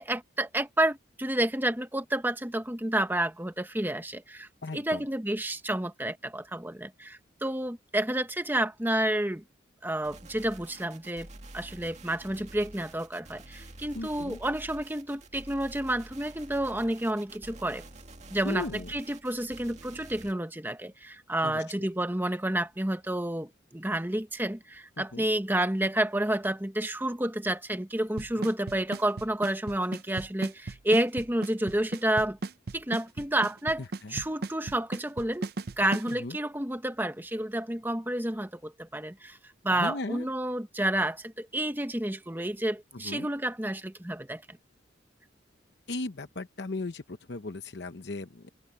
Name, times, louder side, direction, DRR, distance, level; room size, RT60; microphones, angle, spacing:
voice 1, 0.0-9.4 9.8-11.3 11.5-17.9 18.3-32.4 32.7-33.8 34.1-35.5 35.8-39.4 39.6-44.4, right 1 dB, 10° right, 1.1 m, -30 dB
voice 2, 4.6-5.0 13.9-14.4 18.4-18.9 21.4-21.9 25.0-25.3 28.4-28.5 33.8-34.2 36.2-36.4 39.7-40.3 42.9-43.3 45.9-48.5, left 2 dB, 60° left, 0.8 m, -37 dB
sound 1, 10.0-20.3, right 2 dB, 40° right, 2.1 m, -48 dB
Drum kit / Snare drum / Bass drum, 28.2-36.1, right 3 dB, 55° right, 0.6 m, -35 dB
open air
head